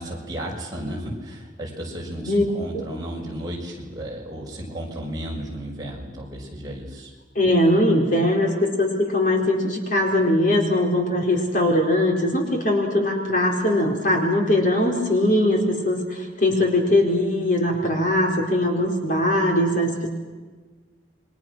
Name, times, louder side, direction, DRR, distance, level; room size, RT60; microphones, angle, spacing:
voice 1, 0.0-7.1, right 1 dB, 20° right, -3 dB, 6.3 m, -33 dB
voice 2, 7.3-20.1, left 1 dB, 45° left, 1 dB, 4.6 m, -21 dB
29.5 x 24.5 x 6.4 m, 1.3 s
head